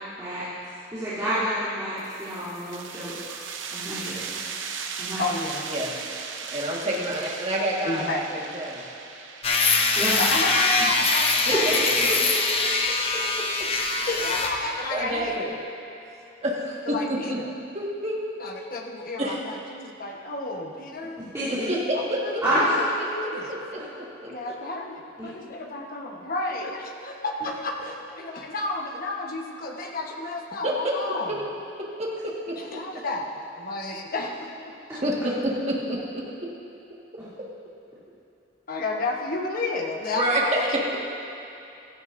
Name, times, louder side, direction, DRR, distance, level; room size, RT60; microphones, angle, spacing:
voice 1, 0.2-0.5 0.9-3.1 3.7-4.2 5.0-5.2 10.0-10.1 11.5-11.6 12.0-12.1 21.2-21.7 22.4-22.7 25.2-25.3, right 1 dB, 15° right, -15 dB, 3.1 m, -28 dB
sound 1, 2.0-13.3, right 5 dB, 85° right, 0.8 m, -38 dB
voice 2, 5.2-5.6 7.8-8.2 10.2-11.7 12.9-13.2 14.1-15.3 16.9-17.5 18.4-21.2 21.9-22.8 23.1-23.5 24.3-31.3 32.6-35.0 38.7-40.8, left 2 dB, 50° left, 1 dB, 1.1 m, -31 dB
voice 3, 6.5-8.8 12.1-12.2 14.9-15.5 16.4-17.2 17.7-18.2 19.2-19.4 21.5-22.4 23.7-24.3 30.6-30.9 32.0-32.8 35.0-36.2 40.1-40.8, right 1 dB, 35° right, -3 dB, 1.7 m, -28 dB
sound 2, 9.4-14.6, left 3 dB, 30° left, 0.9 m, -23 dB
16.0 x 13.5 x 2.6 m, 2.8 s
head